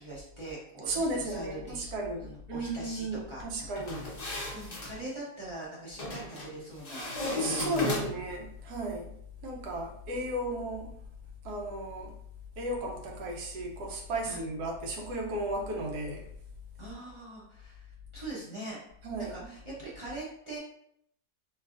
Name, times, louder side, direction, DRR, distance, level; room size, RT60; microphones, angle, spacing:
voice 1, 0.0-1.9 2.2-3.5 3.8-4.1 4.5-7.9 14.2-14.4 16.8-18.8 19.2-20.6, right 2 dB, 40° right, -8 dB, 0.4 m, -42 dB
voice 2, 0.9-4.0 7.4-9.1 9.4-10.9 11.4-12.1 12.6-16.3 19.0-19.3, right 1 dB, 90° right, 1 dB, 1.2 m, -34 dB
sound 1, 3.8-4.9 6.0-6.5 6.8-8.3, left 2 dB, 45° left, 0.5 m, -34 dB
3.3 x 2.4 x 2.3 m, 0.69 s
omnidirectional pair, 1.7 m